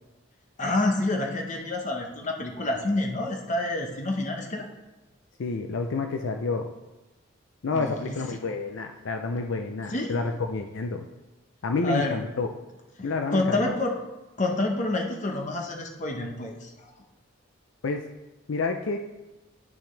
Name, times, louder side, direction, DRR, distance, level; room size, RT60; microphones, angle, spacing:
voice 1, 0.6-4.7 7.7-8.2 9.9-10.2 11.8-12.2 13.0-14.0 14.4-16.9, left 2 dB, 40° left, 2 dB, 1.0 m, -28 dB
voice 2, 5.4-6.7 7.6-11.1 11.6-12.5 13.0-13.6 17.8-18.0 18.5-19.0, left 4 dB, 70° left, 5 dB, 0.5 m, -29 dB
10.5 x 5.9 x 3.3 m, 1.1 s
head